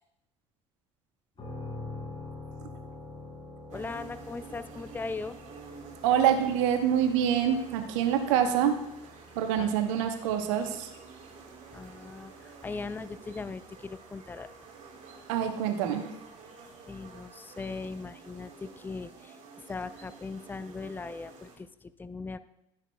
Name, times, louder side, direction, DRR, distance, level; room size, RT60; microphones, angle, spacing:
sound 1, 1.4-15.1, left 2 dB, 30° left, 3.3 m, -47 dB
voice 1, 3.7-5.4 9.6-9.7 11.7-14.5 16.9-19.4 19.7-22.4, left 4 dB, 10° left, 14 dB, 0.5 m, -39 dB
sound 2, 3.7-21.6, right 4 dB, 45° right, 2.6 m, -50 dB
voice 2, 6.0-8.8 9.3-10.9 15.3-16.1, right 9 dB, 70° right, 6 dB, 1.1 m, -26 dB
13.0 x 9.8 x 2.3 m, 0.84 s
hypercardioid pair, 65°, 17 cm